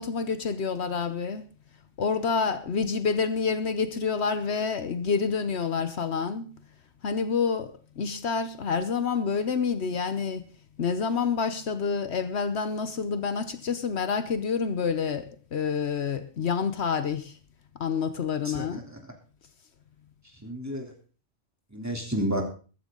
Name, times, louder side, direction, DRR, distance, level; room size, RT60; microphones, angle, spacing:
voice 1, 0.0-1.4 2.0-6.5 7.0-10.4 10.8-17.3 17.8-18.8, left 5 dB, 65° left, 1.2 m, -28 dB
voice 2, 18.4-19.1 20.4-20.9 21.7-22.4, equal, 15° right, 3.3 m, -31 dB
14.5 x 14.0 x 3.8 m
omnidirectional pair, 1.2 m